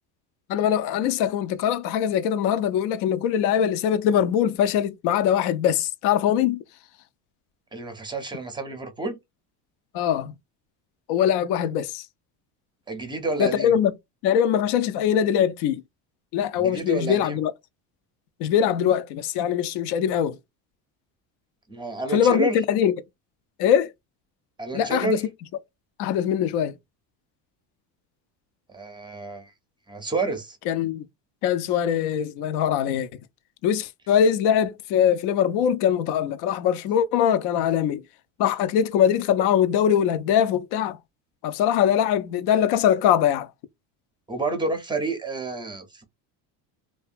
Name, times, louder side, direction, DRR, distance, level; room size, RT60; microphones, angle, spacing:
voice 1, 0.5-6.6 9.9-10.3 11.1-12.0 13.4-13.9 14.2-15.8 16.3-17.5 18.4-20.4 22.1-22.9 23.6-23.9 24.7-25.2 26.0-26.7 30.7-31.0 31.4-33.1 33.6-38.0 38.4-41.0 41.4-43.5, left 9 dB, 65° left, 0.5 m, -22 dB
voice 2, 7.7-9.2 12.9-13.7 16.5-17.4 21.7-22.6 24.6-25.2 28.7-29.5 29.9-30.6 44.3-46.0, right 3 dB, 10° right, 0.5 m, -29 dB
2.6 x 2.2 x 2.4 m
cardioid pair, 115°, 43 cm